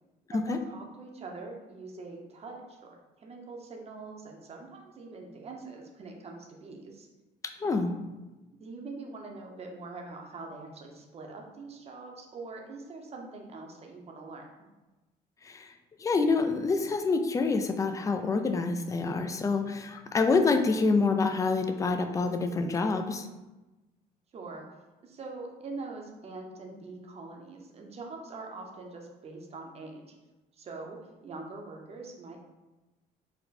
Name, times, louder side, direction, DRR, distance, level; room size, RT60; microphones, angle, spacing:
voice 1, 0.3-7.1 7.6-7.8 8.6-14.5 24.3-24.7 25.0-30.2 30.5-32.4, right 3 dB, 40° right, 1 dB, 0.8 m, -43 dB
voice 2, 7.6-7.9 15.4-15.7 16.0-23.3, left 4 dB, 20° left, 6 dB, 0.3 m, -27 dB
4.2 x 2.2 x 4.1 m, 1.1 s
cardioid pair, 110°, 17 cm